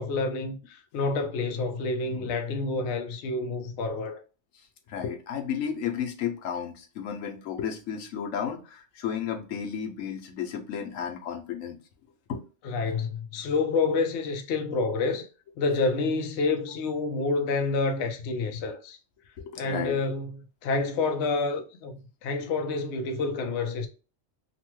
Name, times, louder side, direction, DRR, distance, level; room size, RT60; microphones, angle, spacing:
voice 1, 0.0-4.2 12.6-15.3 15.6-19.0 19.6-23.9, left 3 dB, 65° left, 0.8 m, -28 dB
voice 2, 4.9-11.8 12.3-12.4 19.4-20.0, left 8 dB, 85° left, 1.0 m, -33 dB
3.0 x 2.1 x 2.9 m
omnidirectional pair, 1.3 m